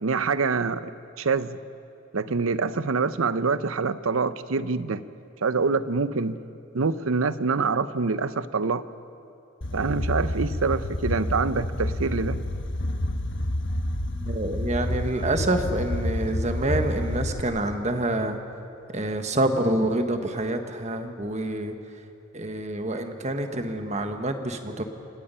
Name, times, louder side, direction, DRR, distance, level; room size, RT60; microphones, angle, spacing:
voice 1, 0.0-0.9 1.2-1.6 2.1-5.0 5.4-6.4 6.7-8.8 9.7-12.4, right 4 dB, 90° right, 14 dB, 0.7 m, -25 dB
sound 1, 9.6-17.4, left 1 dB, 60° left, 1.2 m, -29 dB
voice 2, 14.2-18.4 18.9-21.8 22.3-24.8, right 1 dB, 35° right, 6 dB, 1.4 m, -27 dB
28.5 x 17.5 x 5.6 m, 2.7 s
head